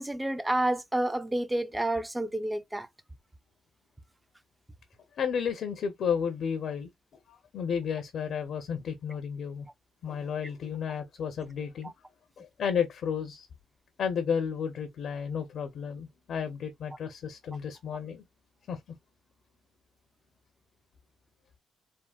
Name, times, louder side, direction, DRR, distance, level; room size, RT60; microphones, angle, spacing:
voice 1, 0.0-2.9 11.8-11.9, right 1 dB, 10° right, 0.4 m, -29 dB
voice 2, 5.2-6.9 7.3-9.7 10.0-11.9 12.4-13.5 14.0-18.3 18.7-18.8, left 7 dB, 65° left, 0.5 m, -32 dB
3.4 x 2.0 x 2.2 m
cardioid pair, 90°, 0 cm